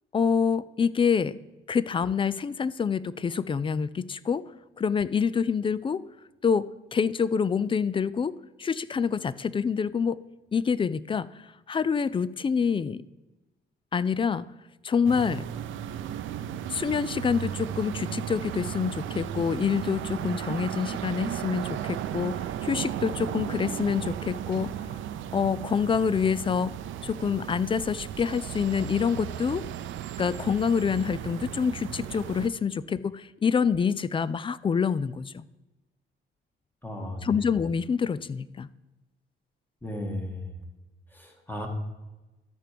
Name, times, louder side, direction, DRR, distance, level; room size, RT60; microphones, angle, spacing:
voice 1, 0.1-1.4 1.7-4.5 4.8-6.0 6.4-10.2 10.5-11.3 11.7-13.0 13.9-14.4 14.8-15.5 16.7-24.7 25.3-26.8 27.0-29.7 30.2-35.4 37.2-38.7, left 6 dB, 25° left, 18 dB, 0.3 m, -26 dB
sound 1, 15.0-32.5, right 10 dB, 75° right, 0.6 m, -35 dB
voice 2, 36.8-37.4 39.8-40.5 41.1-41.7, left 1 dB, 10° left, 2 dB, 1.9 m, -35 dB
13.0 x 4.6 x 5.1 m, 1.1 s
cardioid pair, 90°, 20 cm